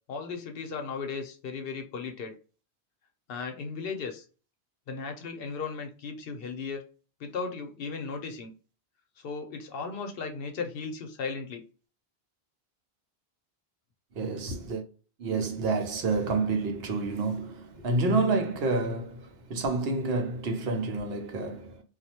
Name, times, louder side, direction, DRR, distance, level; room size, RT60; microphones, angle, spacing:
voice 1, 0.1-2.3 3.3-4.3 4.9-6.8 7.2-8.5 9.2-11.6, left 5 dB, 70° left, 0.8 m, -36 dB
voice 2, 14.2-14.8 15.2-21.8, right 3 dB, 75° right, 0.9 m, -29 dB
2.3 x 2.1 x 2.7 m
omnidirectional pair, 1.0 m